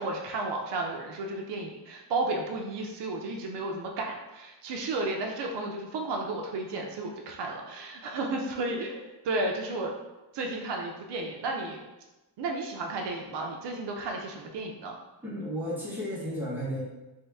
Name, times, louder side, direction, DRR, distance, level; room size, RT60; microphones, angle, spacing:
voice 1, 0.0-9.9 10.3-11.8 12.4-15.0, right 2 dB, 70° right, 1 dB, 0.6 m, -33 dB
voice 2, 15.2-16.8, equal, 5° right, -8 dB, 1.3 m, -33 dB
3.1 x 2.7 x 3.4 m, 1.0 s
cardioid pair, 100°, 43 cm